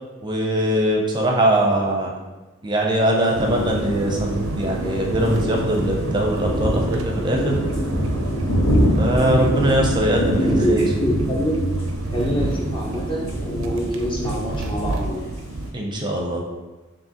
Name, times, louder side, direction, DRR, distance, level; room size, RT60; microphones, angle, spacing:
voice 1, 0.2-2.1 2.6-7.6 9.0-10.8 15.7-16.4, right 1 dB, 20° right, 0 dB, 0.6 m, -21 dB
sound 1, 3.3-15.7, right 2 dB, 70° right, 0.4 m, -29 dB
sound 2, 4.0-4.1 4.3-4.4 4.8-4.9 5.2-5.6 6.0-15.7, equal, 90° left, 0.9 m, -25 dB
voice 2, 10.4-11.8 12.1-15.3, equal, 25° left, -2 dB, 0.6 m, -25 dB
4.8 x 2.9 x 2.9 m, 1.2 s
head